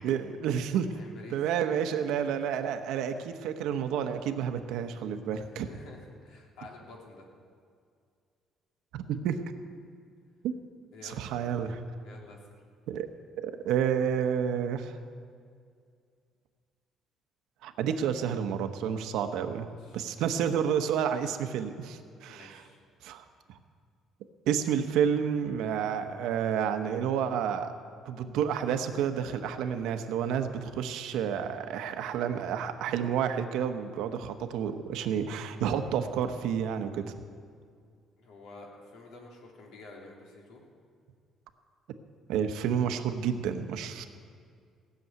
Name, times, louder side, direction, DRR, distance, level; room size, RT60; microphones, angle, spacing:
voice 1, 0.0-0.9 1.3-5.7 8.9-9.4 10.4-10.5 11.0-11.8 12.9-13.1 13.4-15.0 17.6-22.6 23.0-23.6 24.5-27.7 28.1-37.1 42.3-44.1, right 8 dB, 80° right, 7 dB, 1.0 m, -30 dB
voice 2, 0.9-1.4 5.3-7.2 10.9-11.2 12.0-12.4 19.6-20.0 22.3-22.8 38.2-40.6, left 3 dB, 75° left, -1 dB, 3.1 m, -50 dB
17.0 x 7.1 x 9.3 m, 2.2 s
cardioid pair, 165°, 0 cm